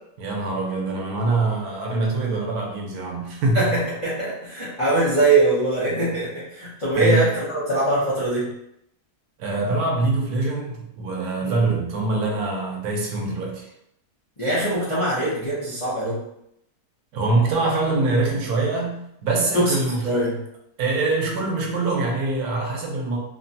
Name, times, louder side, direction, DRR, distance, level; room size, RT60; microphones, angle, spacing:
voice 1, 0.2-3.7 7.0-7.3 9.4-13.7 17.1-20.2 20.8-23.2, right 3 dB, 90° right, -1 dB, 1.2 m, -24 dB
voice 2, 3.5-8.5 11.4-11.5 14.4-16.2 19.5-20.4, right 2 dB, 30° left, -11 dB, 0.6 m, -22 dB
3.1 x 2.2 x 2.6 m, 0.78 s
omnidirectional pair, 1.6 m